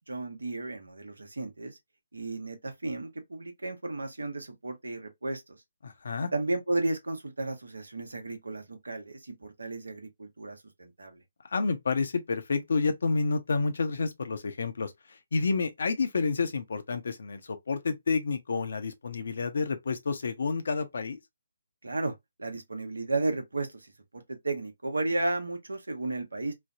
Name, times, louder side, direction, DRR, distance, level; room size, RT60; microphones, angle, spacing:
voice 1, 0.1-1.8 2.1-5.6 6.3-11.2 21.8-26.5, right 2 dB, 75° right, 0.8 m, -33 dB
voice 2, 5.8-6.3 11.5-14.9 15.3-21.2, left 4 dB, 60° left, 0.6 m, -29 dB
3.2 x 2.0 x 2.3 m
figure-of-eight pair, 140°, 0 cm